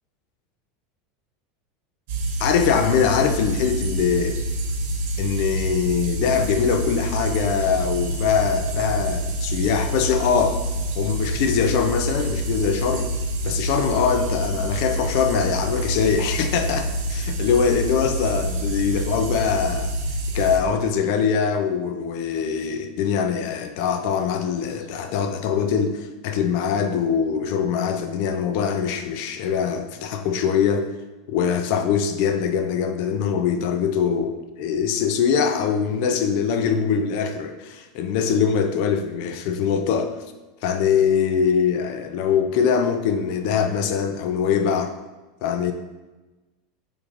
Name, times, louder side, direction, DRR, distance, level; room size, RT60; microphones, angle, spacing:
sound 1, 2.1-20.6, right 1 dB, 70° right, 0.6 m, -27 dB
voice 1, 2.4-4.4 5.2-10.6 11.0-13.1 13.4-19.9 20.3-30.9 31.3-40.1 40.6-44.9 45.4-45.7, left 7 dB, 65° left, 7 dB, 0.3 m, -23 dB
4.5 x 2.5 x 2.5 m, 1.1 s
supercardioid pair, 125°, 0 cm